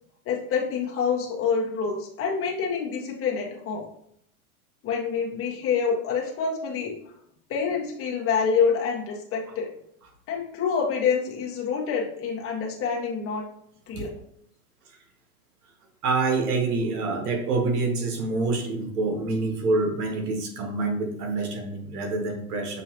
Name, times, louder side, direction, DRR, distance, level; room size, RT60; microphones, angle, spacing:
voice 1, 0.2-3.9 4.8-6.9 7.5-9.7 10.3-13.5 13.9-14.1, left 6 dB, 30° left, 0 dB, 1.2 m, -27 dB
voice 2, 16.0-22.8, right 3 dB, 80° right, 3 dB, 1.4 m, -26 dB
6.5 x 2.8 x 2.9 m, 0.70 s
hypercardioid pair, 120°, 45 cm